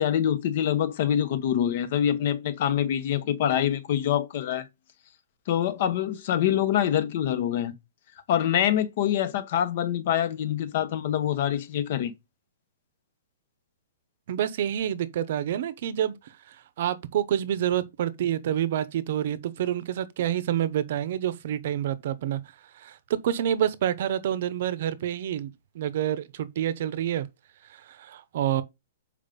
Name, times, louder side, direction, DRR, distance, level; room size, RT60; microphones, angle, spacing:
voice 1, 0.0-4.7 5.5-7.7 8.3-12.1, left 10 dB, 35° left, 1.1 m, -25 dB
voice 2, 14.3-16.1 16.8-22.4 22.8-27.3 27.7-28.6, right 10 dB, 40° right, 0.9 m, -28 dB
7.2 x 5.1 x 5.2 m
hypercardioid pair, 180°, 0 cm